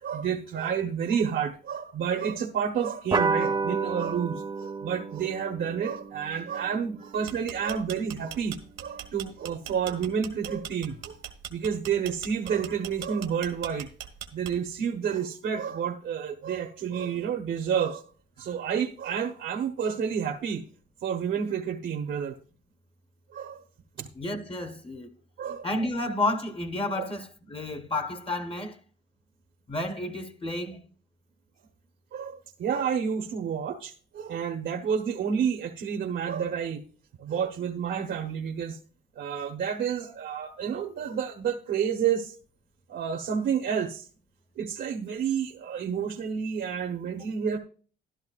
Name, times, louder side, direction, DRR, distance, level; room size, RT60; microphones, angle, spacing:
voice 1, 0.0-11.2 11.5-13.9 14.3-18.0 18.4-20.6 21.0-22.3 23.3-23.6 24.0-24.1 25.4-25.7 27.0-27.1 32.1-36.8 37.2-38.8 39.2-42.3 42.9-44.1 44.6-47.6, right 7 dB, 65° right, 1.0 m, -30 dB
sound 1, 3.1-8.0, right 4 dB, 20° right, 0.8 m, -31 dB
sound 2, 7.1-14.8, right 10 dB, 85° right, 1.5 m, -40 dB
voice 2, 24.1-25.1 25.6-28.8 29.7-30.8, left 2 dB, 30° left, 1.1 m, -31 dB
13.0 x 12.0 x 2.4 m
cardioid pair, 90°, 20 cm